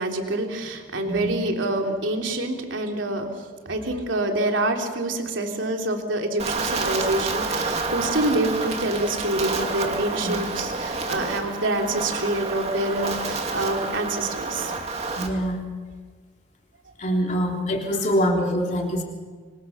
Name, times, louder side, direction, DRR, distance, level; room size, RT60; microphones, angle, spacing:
voice 1, 0.0-14.7, right 1 dB, 90° right, 2 dB, 3.3 m, -26 dB
Wind, 6.4-15.3, right 3 dB, 35° right, 2.7 m, -29 dB
voice 2, 15.2-15.6 17.0-19.0, equal, 40° left, 1 dB, 3.4 m, -24 dB
26.0 x 24.5 x 6.8 m, 1.5 s
head